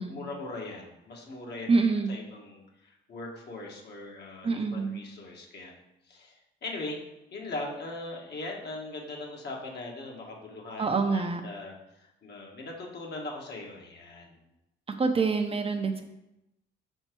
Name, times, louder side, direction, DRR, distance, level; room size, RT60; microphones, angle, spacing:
voice 1, 0.0-1.7 2.1-5.7 6.1-7.0 7.3-14.3 15.8-16.0, left 2 dB, 55° left, -1 dB, 1.6 m, -40 dB
voice 2, 1.7-2.1 4.4-5.0 10.8-11.4 14.9-16.0, right 4 dB, 30° right, 6 dB, 0.6 m, -26 dB
5.7 x 4.4 x 4.5 m, 0.92 s
cardioid pair, 90°, 20 cm